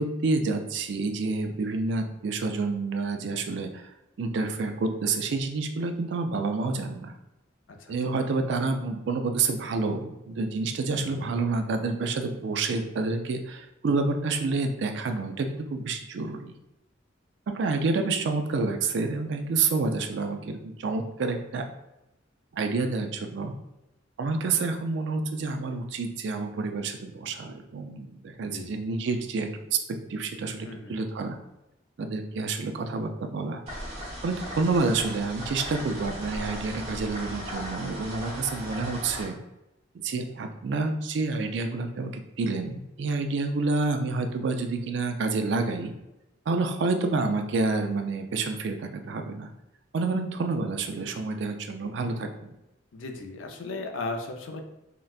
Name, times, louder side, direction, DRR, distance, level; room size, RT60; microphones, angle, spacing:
voice 1, 0.0-3.9 4.2-7.1 7.9-16.5 17.5-21.6 22.5-23.5 24.2-29.8 30.1-31.4 32.0-33.6 34.2-39.4 39.9-45.9 46.5-49.5 49.9-52.5, right 3 dB, 65° right, 6 dB, 0.4 m, -28 dB
voice 2, 10.9-11.3 28.5-28.8 30.6-30.9 52.9-54.6, left 3 dB, 85° left, 4 dB, 0.4 m, -37 dB
sound 1, 33.7-39.2, equal, 35° right, 1.2 m, -37 dB
3.9 x 2.1 x 2.3 m, 0.92 s
head